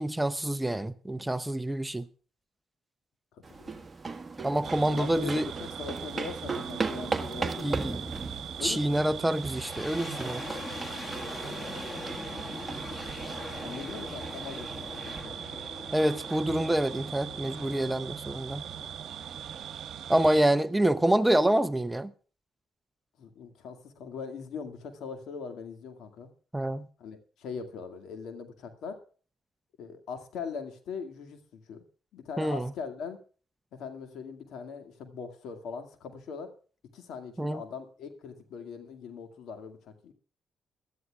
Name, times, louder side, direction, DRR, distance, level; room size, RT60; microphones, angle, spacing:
voice 1, 0.0-2.1 4.4-5.5 7.6-8.0 8.6-10.6 15.9-18.7 20.1-22.1 26.5-26.9 32.4-32.7 37.4-37.6, right 1 dB, 10° right, 0.7 m, -27 dB
voice 2, 3.3-3.9 4.9-8.1 8.6-9.1 13.6-15.7 23.2-26.3 27.0-29.0 29.8-31.8 32.1-33.2 33.7-36.5 36.9-40.1, left 5 dB, 80° left, 2.1 m, -41 dB
sound 1, 3.4-15.2, right 4 dB, 25° right, 1.5 m, -38 dB
sound 2, 4.6-20.4, right 9 dB, 65° right, 1.2 m, -41 dB
sound 3, 9.1-20.1, left 2 dB, 30° left, 1.7 m, -43 dB
21.5 x 12.5 x 2.4 m
cardioid pair, 90°, 0 cm